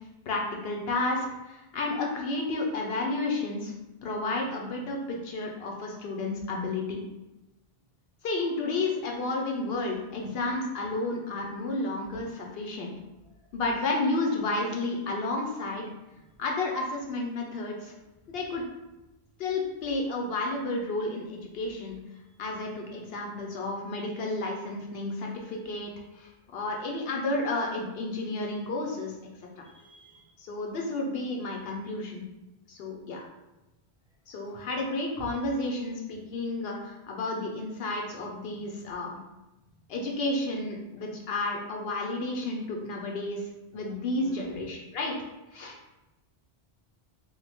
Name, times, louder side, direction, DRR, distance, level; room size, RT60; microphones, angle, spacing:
voice 1, 0.3-3.7 4.0-7.0 8.2-12.9 13.5-15.8 16.4-17.9 18.3-18.6 19.4-22.0 22.4-29.1 30.4-32.2 32.7-33.2 34.3-39.2 39.9-45.2 45.5-45.8, left 2 dB, 75° left, 0 dB, 0.8 m, -31 dB
voice 2, 29.6-30.3 34.5-34.7 35.2-35.3 44.2-44.6, right 4 dB, 5° right, -6 dB, 0.7 m, -47 dB
3.0 x 2.1 x 3.4 m, 0.99 s
omnidirectional pair, 1.0 m